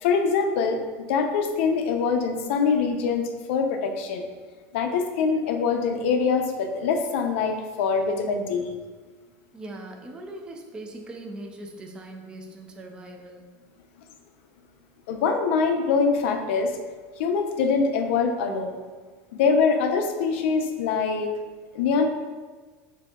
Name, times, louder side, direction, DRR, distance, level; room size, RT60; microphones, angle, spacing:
voice 1, 0.0-4.2 4.7-8.7 15.1-16.8 17.2-18.8 19.3-21.3 21.7-22.1, left 5 dB, 75° left, 4 dB, 0.5 m, -24 dB
voice 2, 9.5-13.4, right 1 dB, 15° right, 2 dB, 0.4 m, -40 dB
6.9 x 2.7 x 2.3 m, 1.4 s
cardioid pair, 175°, 7 cm